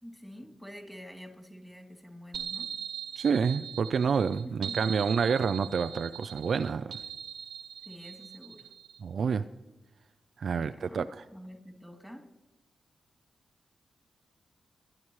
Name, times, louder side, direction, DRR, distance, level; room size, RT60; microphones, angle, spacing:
voice 1, 0.0-2.8 4.4-5.0 7.8-8.7 10.5-12.3, equal, 5° left, 2 dB, 2.9 m, -47 dB
sound 1, 2.3-9.0, right 8 dB, 90° right, 1.3 m, -40 dB
voice 2, 3.2-6.9 9.0-9.5 10.4-11.0, right 6 dB, 70° right, 12 dB, 0.3 m, -28 dB
27.0 x 9.8 x 3.2 m, 1.0 s
cardioid pair, 50°, 0 cm